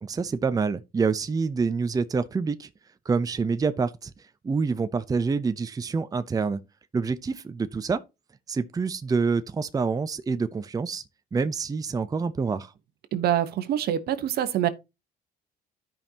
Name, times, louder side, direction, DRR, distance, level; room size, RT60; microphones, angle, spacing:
voice 1, 0.0-2.7 3.1-4.1 4.4-6.6 6.9-8.0 8.5-11.0 11.3-12.7, right 4 dB, 20° right, 0.7 m, -27 dB
voice 2, 13.1-14.7, right 11 dB, 65° right, 1.2 m, -25 dB
12.5 x 5.4 x 2.9 m
cardioid pair, 110°, 17 cm